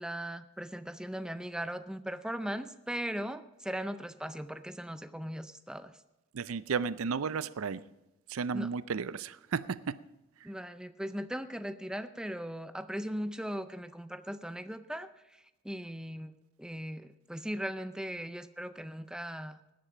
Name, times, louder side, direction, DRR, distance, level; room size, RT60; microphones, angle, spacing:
voice 1, 0.0-5.9 8.5-8.7 10.4-15.1 15.6-16.3 16.6-19.6, equal, 5° right, 0.4 m, -38 dB
voice 2, 6.3-7.8 8.3-10.0, right 5 dB, 90° right, 0.5 m, -33 dB
17.0 x 10.5 x 5.0 m
head